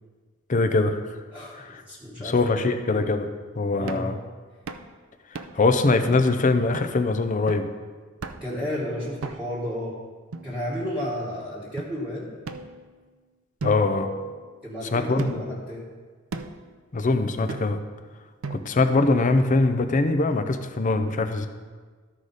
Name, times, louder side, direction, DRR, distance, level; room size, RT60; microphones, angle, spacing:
voice 1, 0.5-1.0 1.6-1.8 2.2-3.3 3.6-4.2 5.5-7.7 13.6-14.1 14.9-15.4 16.9-17.8 18.5-21.5, left 3 dB, 40° left, 8 dB, 0.5 m, -22 dB
voice 2, 1.3-2.5 3.7-4.1 8.4-10.0 10.4-12.3 14.6-15.9, equal, 5° right, -8 dB, 1.3 m, -32 dB
sound 1, 3.9-4.2 4.7-4.9 5.4-5.7 6.2-6.3 6.7-7.0 7.5-7.8 8.2-8.6 9.2-9.7 10.3-11.0 11.8-11.9 12.5-13.2 13.6-14.7 15.2-15.6 16.3-16.7 17.5-17.9 18.4-18.9, right 4 dB, 90° right, 0.5 m, -37 dB
13.0 x 4.9 x 4.0 m, 1.5 s
head